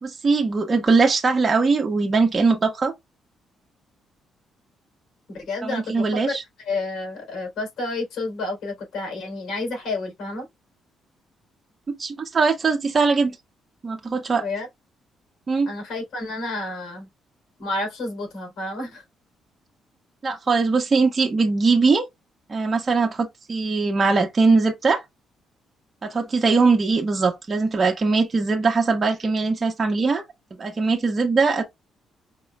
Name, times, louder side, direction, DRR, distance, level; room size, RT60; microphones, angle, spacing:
voice 1, 0.0-2.9 5.6-6.4 11.9-13.4 13.8-14.5 15.5-15.7 20.2-22.0 22.5-25.0 26.0-30.2 30.6-31.6, right 4 dB, 35° right, 1.2 m, -21 dB
voice 2, 5.3-6.3 6.7-10.5 14.4-14.7 15.6-17.1 17.6-19.0, left 2 dB, 75° left, 3.4 m, -30 dB
5.3 x 3.6 x 2.3 m
cardioid pair, 90°, 0 cm